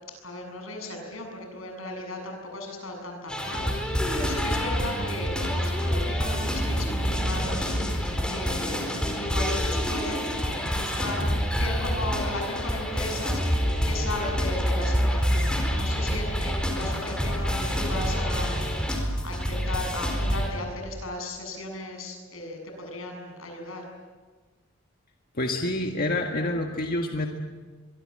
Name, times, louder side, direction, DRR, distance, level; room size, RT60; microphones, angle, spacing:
voice 1, 0.2-7.7 8.3-8.8 9.2-18.6 18.9-23.8, left 2 dB, 85° left, 3 dB, 7.5 m, -36 dB
sound 1, 3.3-20.5, equal, 5° left, 4.2 m, -27 dB
voice 2, 25.3-27.3, left 1 dB, 45° left, 2 dB, 1.7 m, -27 dB
24.0 x 24.0 x 7.7 m, 1.4 s
head